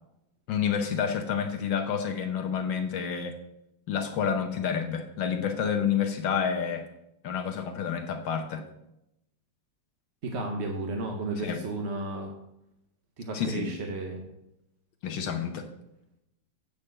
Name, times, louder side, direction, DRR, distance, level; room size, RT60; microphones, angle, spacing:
voice 1, 0.5-3.4 3.9-6.9 7.2-8.6 11.4-11.6 13.3-13.7 15.0-15.7, left 7 dB, 70° left, 4 dB, 1.5 m, -29 dB
voice 2, 10.2-12.3 13.2-14.2, right 2 dB, 45° right, 2 dB, 1.0 m, -33 dB
8.6 x 4.9 x 7.7 m, 0.83 s
omnidirectional pair, 2.1 m